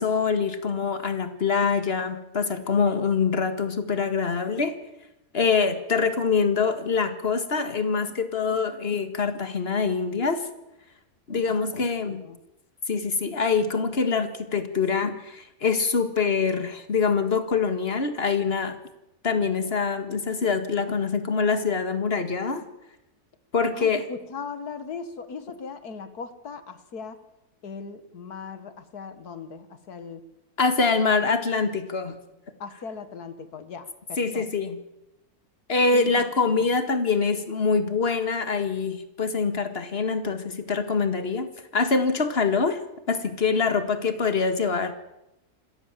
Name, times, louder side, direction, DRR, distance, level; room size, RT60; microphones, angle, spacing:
voice 1, 0.0-4.8 5.3-10.5 11.3-12.2 12.9-18.8 19.2-22.6 23.5-24.0 30.6-32.2 34.2-34.8 35.7-41.5 41.7-42.8 43.1-44.9, left 5 dB, 40° left, 8 dB, 2.0 m, -24 dB
voice 2, 12.0-12.4 23.7-27.2 27.6-30.2 32.6-34.5 35.9-36.3 36.6-36.7, left 5 dB, 75° left, 11 dB, 2.1 m, -39 dB
27.0 x 13.5 x 7.5 m, 0.91 s
omnidirectional pair, 1.6 m